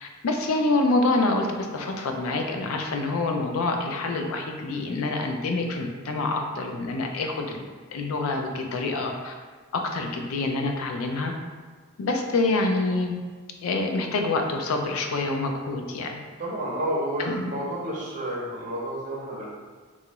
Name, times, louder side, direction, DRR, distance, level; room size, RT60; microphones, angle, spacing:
voice 1, 0.0-7.6 7.9-9.3 9.7-11.3 12.0-13.2 13.6-16.2 17.2-17.5, left 2 dB, 90° left, 3 dB, 0.4 m, -26 dB
voice 2, 16.4-19.5, right 1 dB, 40° right, -5 dB, 0.7 m, -30 dB
2.9 x 2.4 x 2.9 m, 1.5 s
head